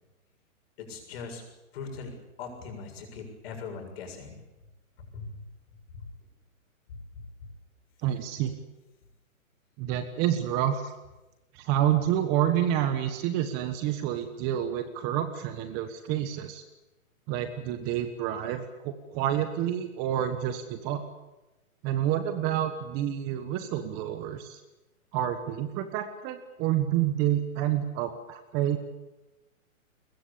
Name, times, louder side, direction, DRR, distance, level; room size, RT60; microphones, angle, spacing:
voice 1, 0.8-1.4 1.7-2.1 2.4-4.4 5.1-5.4 5.9-6.0 6.9-7.2, left 5 dB, 45° left, 4 dB, 7.2 m, -40 dB
voice 2, 8.0-8.5 9.8-10.9 11.5-16.6 17.3-21.0 21.8-24.6 25.1-28.8, right 11 dB, 25° right, 9 dB, 1.3 m, -28 dB
22.5 x 21.0 x 8.7 m, 1.0 s
hypercardioid pair, 155°, 42 cm